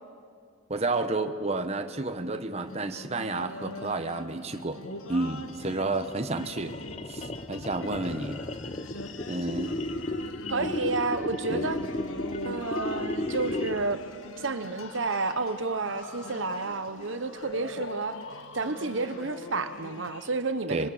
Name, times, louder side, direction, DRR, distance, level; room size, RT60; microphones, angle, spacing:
voice 1, 0.7-4.8 5.1-6.8 7.1-8.4 9.3-9.8 11.5-11.6 20.7-20.9, right 2 dB, 30° right, 7 dB, 1.0 m, -31 dB
sound 1, 2.6-20.1, left 1 dB, 80° left, 1.6 m, -44 dB
sound 2, 5.3-14.0, left 1 dB, 30° left, 0.7 m, -34 dB
sound 3, 7.8-20.3, left 4 dB, 60° left, 1.1 m, -46 dB
voice 2, 10.5-11.8 12.4-14.0 14.4-18.2 18.5-20.9, right 3 dB, 60° right, 10 dB, 0.9 m, -30 dB
25.5 x 23.5 x 7.2 m, 2.1 s
head